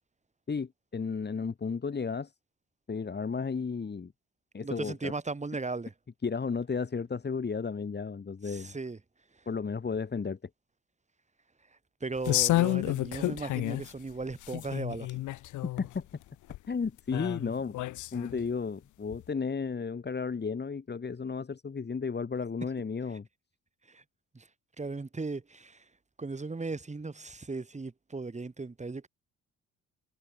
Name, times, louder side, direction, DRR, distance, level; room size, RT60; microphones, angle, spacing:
voice 1, 0.5-2.3 2.9-4.1 4.5-5.1 6.2-8.7 9.5-10.5 15.8-16.1 16.7-17.8 18.1-23.3, left 5 dB, 35° left, 4.5 m, -33 dB
voice 2, 4.6-5.9 8.4-9.0 9.4-9.5 12.0-15.2 23.9-24.0 24.3-24.5 24.8-25.9 26.2-29.1, right 3 dB, 25° right, 5.5 m, -37 dB
sound 1, 12.2-13.9 14.3-16.0 16.5-16.6 17.1-18.4 19.1-19.2, left 16 dB, 80° left, 0.7 m, -30 dB
cardioid pair, 90°, 30 cm